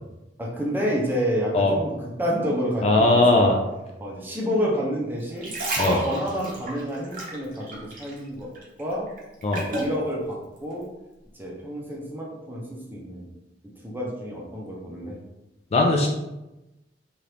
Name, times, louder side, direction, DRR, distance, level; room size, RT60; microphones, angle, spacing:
voice 1, 0.4-1.9 2.2-3.5 4.0-5.5 5.8-8.5 8.8-9.1 9.7-10.9 11.4-13.2 13.8-15.2, equal, 10° right, -3 dB, 0.6 m, -29 dB
voice 2, 2.8-3.5 5.8-6.0 9.4-9.6 15.7-16.1, left 2 dB, 35° left, 1 dB, 0.4 m, -19 dB
sound 1, 5.2-8.3 8.5-10.0 10.6-10.7, right 1 dB, 50° right, 0.8 m, -31 dB
2.9 x 2.5 x 3.3 m, 0.98 s
head